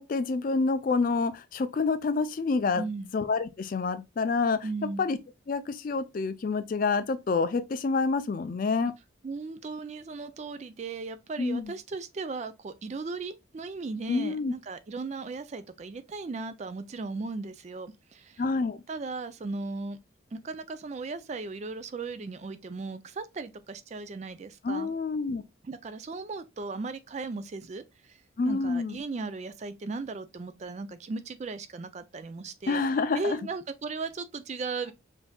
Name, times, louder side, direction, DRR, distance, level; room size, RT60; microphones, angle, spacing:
voice 1, 0.0-2.8 3.1-4.7 5.0-5.2 5.5-8.9 11.4-11.7 14.1-14.5 18.4-18.8 24.6-25.4 28.4-29.0 32.7-33.4, left 4 dB, 45° left, 0.3 m, -28 dB
voice 2, 2.7-3.1 4.6-5.0 9.2-18.4 18.9-20.0 20.3-24.9 25.6-28.2 28.5-32.8 33.1-34.9, right 3 dB, 35° right, 0.3 m, -37 dB
5.3 x 2.6 x 2.2 m
head